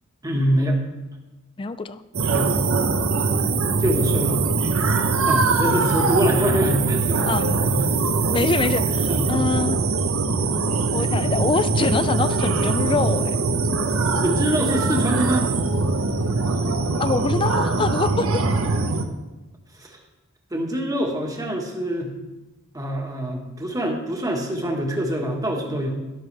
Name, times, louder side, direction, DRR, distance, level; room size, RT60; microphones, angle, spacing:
voice 1, 0.2-0.8 2.3-2.6 3.8-4.4 5.3-7.9 9.1-9.3 14.2-15.5 19.8-20.0 20.5-22.1 22.7-25.9, equal, 15° right, 1 dB, 1.5 m, -25 dB
voice 2, 1.6-2.0 7.3-7.5 8.3-9.8 10.9-13.4 17.0-18.4, left 4 dB, 25° left, 13 dB, 0.4 m, -24 dB
sound 1, 2.1-19.1, right 3 dB, 70° right, 0.9 m, -22 dB
12.5 x 11.5 x 3.4 m, 1.1 s
head